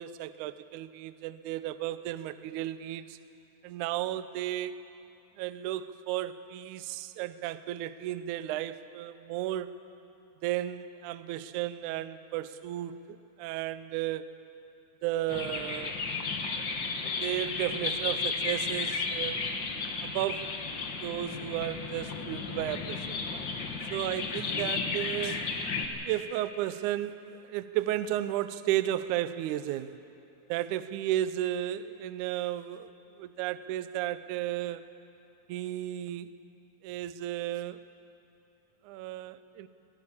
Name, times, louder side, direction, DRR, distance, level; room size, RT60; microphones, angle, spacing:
voice 1, 0.0-3.2 3.6-4.8 5.4-9.8 10.4-14.3 15.0-16.0 16.5-16.7 17.2-19.4 20.0-20.5 21.0-23.5 23.9-25.5 26.1-30.0 30.5-32.9 33.2-34.8 35.5-36.3 36.8-37.8 38.8-39.7, right 13 dB, 85° right, 13 dB, 1.7 m, -34 dB
sound 1, 15.3-25.9, left 4 dB, 55° left, 1.2 m, -34 dB
22.0 x 15.5 x 8.6 m, 2.7 s
omnidirectional pair, 4.3 m